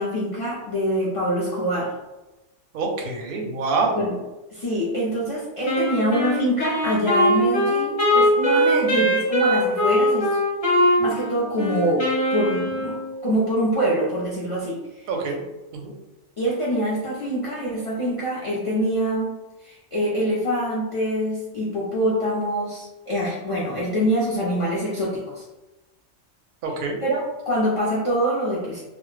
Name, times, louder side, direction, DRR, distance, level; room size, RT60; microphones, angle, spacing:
voice 1, 0.0-1.9 3.9-4.2 4.5-10.4 10.7-12.0 12.3-15.1 16.4-19.3 19.6-25.4 27.0-28.8, equal, 60° left, -7 dB, 0.3 m, -25 dB
voice 2, 2.7-4.0 15.1-15.4 15.7-15.9 26.6-27.0, right 3 dB, 60° right, 1 dB, 0.6 m, -25 dB
Wind instrument woodwind instrument, 5.7-13.1, equal, 35° left, 0.7 m, -21 dB
2.1 x 2.0 x 3.1 m, 1.0 s
omnidirectional pair, 1.2 m